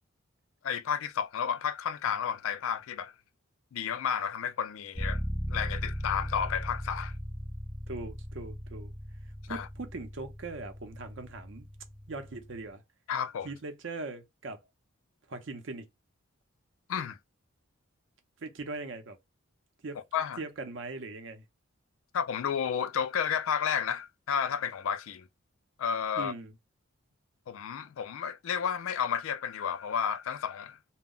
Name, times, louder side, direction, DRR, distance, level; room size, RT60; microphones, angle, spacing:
voice 1, 0.6-3.1 3.7-5.2 5.5-7.1 9.5-9.7 13.1-13.5 16.9-17.2 20.1-20.4 22.1-25.3 25.8-26.3 27.5-30.8, left 7 dB, 70° left, 0.3 m, -31 dB
sound 1, 4.9-12.7, equal, 5° right, 0.4 m, -38 dB
voice 2, 7.9-8.9 9.5-11.7 12.1-12.8 13.4-14.6 15.3-15.9 18.4-19.2 19.8-20.0 20.4-21.4 26.2-26.5, right 3 dB, 60° right, 0.6 m, -40 dB
2.1 x 2.0 x 3.6 m
head